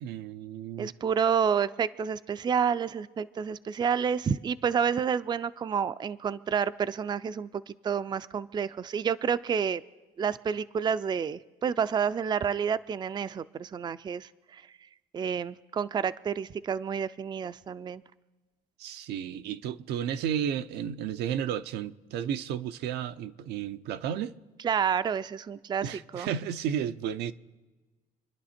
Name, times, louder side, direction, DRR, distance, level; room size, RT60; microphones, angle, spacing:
voice 1, 0.0-0.9 18.8-24.3 25.8-27.3, right 9 dB, 80° right, 0.6 m, -33 dB
voice 2, 0.8-9.8 10.2-14.6 15.1-18.0 24.6-26.3, right 7 dB, 25° right, 0.4 m, -29 dB
27.5 x 10.5 x 4.3 m
cardioid pair, 110°, 17 cm